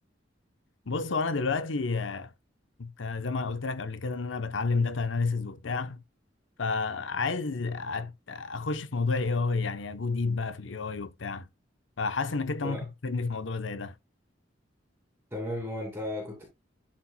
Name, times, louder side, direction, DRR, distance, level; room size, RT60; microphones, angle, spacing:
voice 1, 0.9-2.3 2.8-6.0 6.6-11.5 12.0-13.9, left 4 dB, 80° left, 0.8 m, -30 dB
voice 2, 15.3-16.4, left 1 dB, 10° right, 2.4 m, -35 dB
12.0 x 4.4 x 2.2 m
head